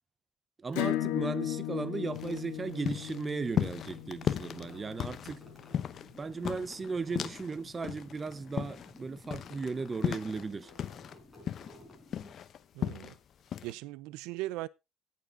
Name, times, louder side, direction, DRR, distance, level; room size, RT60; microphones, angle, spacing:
voice 1, 0.6-5.4 6.2-10.7, right 4 dB, 15° right, 0.6 m, -36 dB
Acoustic guitar / Strum, 0.7-6.0, left 14 dB, 85° left, 1.8 m, -36 dB
sound 1, 2.1-7.6 7.8-11.1 11.5-13.2 13.5-13.7, left 9 dB, 35° left, 0.8 m, -36 dB
sound 2, 3.6-12.6, left 2 dB, 5° left, 4.5 m, -54 dB
voice 2, 12.7-13.1 13.6-14.7, right 17 dB, 70° right, 0.5 m, -38 dB
17.5 x 7.1 x 3.7 m
cardioid pair, 170°, 0 cm